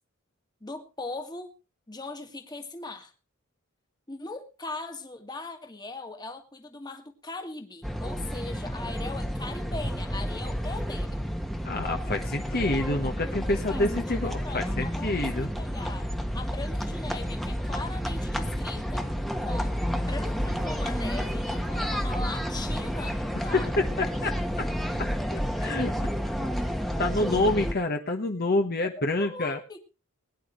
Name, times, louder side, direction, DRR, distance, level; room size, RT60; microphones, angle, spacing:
voice 1, 0.6-1.5 1.9-3.1 4.1-11.3 13.5-19.1 19.4-19.7 20.1-23.7 29.0-29.9, left 3 dB, 20° left, 5 dB, 1.9 m, -40 dB
sound 1, 7.8-27.7, equal, ahead, 1.3 m, -30 dB
voice 2, 11.6-15.5 23.5-24.3 25.3-25.9 26.3-26.5 27.0-29.6, left 2 dB, 50° left, 4 dB, 1.4 m, -27 dB
21.5 x 10.5 x 3.2 m, 0.31 s
head